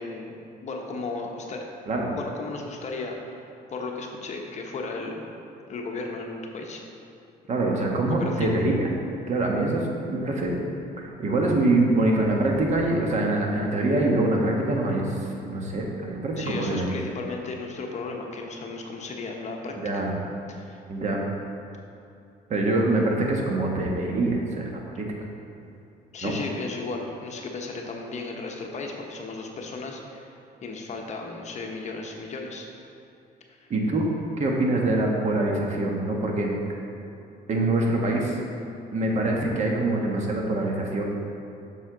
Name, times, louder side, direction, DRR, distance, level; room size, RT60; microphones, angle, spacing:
voice 1, 0.0-1.7 2.1-3.4 3.7-5.3 5.7-6.8 7.6-7.8 8.1-8.5 16.4-20.0 20.5-20.8 24.9-25.0 26.1-32.7 33.5-33.6, left 3 dB, 45° left, 1 dB, 0.9 m, -35 dB
voice 2, 1.9-2.2 7.5-8.9 9.3-10.5 11.0-15.2 15.4-16.9 19.8-20.1 20.9-21.2 22.5-25.1 26.2-26.3 33.7-34.0 34.4-36.5 37.5-38.4 38.9-41.0, right 2 dB, 45° right, 0 dB, 1.4 m, -24 dB
8.1 x 6.5 x 3.9 m, 2.7 s
cardioid pair, 110°, 17 cm